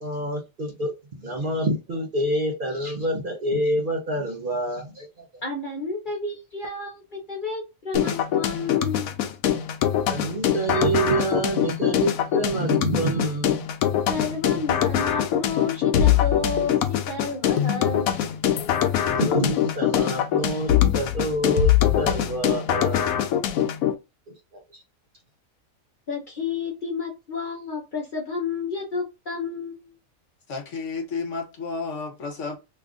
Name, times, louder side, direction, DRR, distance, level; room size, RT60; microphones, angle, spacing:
voice 1, 0.0-5.3 10.1-13.6 19.1-23.1, right 1 dB, 45° right, 0.8 m, -27 dB
voice 2, 5.4-9.1 14.1-18.1 26.1-29.9, left 4 dB, 45° left, 0.7 m, -31 dB
sound 1, 7.9-23.9, left 10 dB, 80° left, 1.0 m, -23 dB
voice 3, 30.5-32.6, left 4 dB, 60° left, 1.2 m, -31 dB
3.2 x 2.4 x 3.6 m
omnidirectional pair, 1.4 m